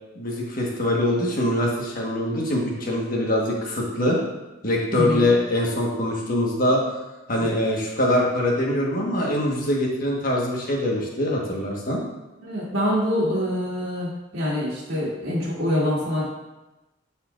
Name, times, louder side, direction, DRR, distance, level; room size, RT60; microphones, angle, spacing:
voice 1, 0.1-4.2 4.6-6.8 7.3-12.0, left 1 dB, 45° left, -2 dB, 1.4 m, -23 dB
voice 2, 4.9-5.3 7.4-7.5 12.4-16.3, equal, 60° right, -11 dB, 2.0 m, -25 dB
11.5 x 4.3 x 2.5 m, 1.0 s
head